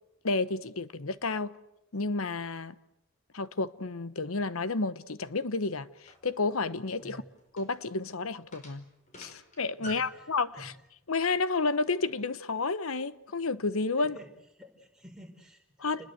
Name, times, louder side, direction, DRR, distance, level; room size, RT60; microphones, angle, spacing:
voice 1, 0.2-1.6 1.9-2.7 3.3-5.9 6.2-7.2 7.6-8.8 9.2-10.7 11.1-14.1 15.8-16.0, left 3 dB, 80° left, 1.0 m, -31 dB
sound 1, 6.1-10.2, equal, 35° left, 4.8 m, -49 dB
voice 2, 9.8-10.8 14.0-14.3 14.6-16.1, right 1 dB, 5° right, 4.8 m, -50 dB
29.5 x 21.0 x 8.0 m
head